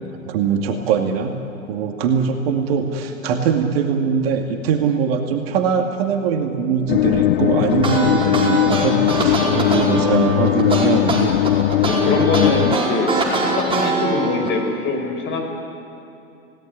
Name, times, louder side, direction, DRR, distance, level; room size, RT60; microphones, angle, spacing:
voice 1, 0.3-1.4 1.7-11.3, right 6 dB, 45° right, 4 dB, 2.4 m, -21 dB
sound 1, 6.9-12.8, left 15 dB, 45° left, 0.6 m, -19 dB
sound 2, 7.7-14.5, right 2 dB, 10° right, 5.1 m, -22 dB
voice 2, 11.8-15.4, left 3 dB, 30° left, 2 dB, 5.4 m, -23 dB
28.0 x 18.0 x 9.8 m, 2.7 s
figure-of-eight pair, 105°, 42 cm